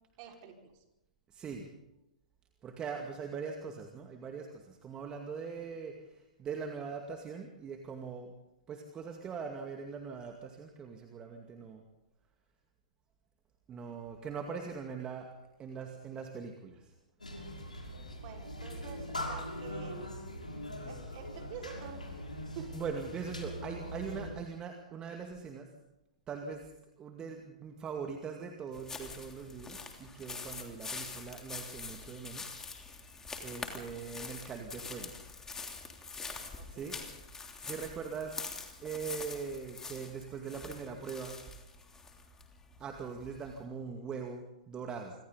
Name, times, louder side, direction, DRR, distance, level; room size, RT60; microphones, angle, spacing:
voice 1, 0.2-0.8 18.2-20.0 20.9-22.0 22.5-22.8 24.1-24.3 36.5-37.1, right 8 dB, 40° right, 1 dB, 5.1 m, -48 dB
voice 2, 1.3-1.7 2.6-6.0 6.4-8.3 8.7-11.8 13.7-15.3 15.6-16.9 22.7-25.7 26.3-26.7 27.0-32.5 33.4-35.1 36.7-37.0 37.6-38.5 38.8-41.4 42.8-45.1, right 6 dB, 20° right, 3 dB, 2.2 m, -41 dB
sound 1, 17.2-24.3, left 1 dB, 85° left, 6.1 m, -41 dB
Forest dry leaves walk., 28.7-43.6, left 4 dB, 10° left, 3.3 m, -45 dB
26.5 x 25.5 x 4.1 m, 0.91 s
figure-of-eight pair, 110°, 4 cm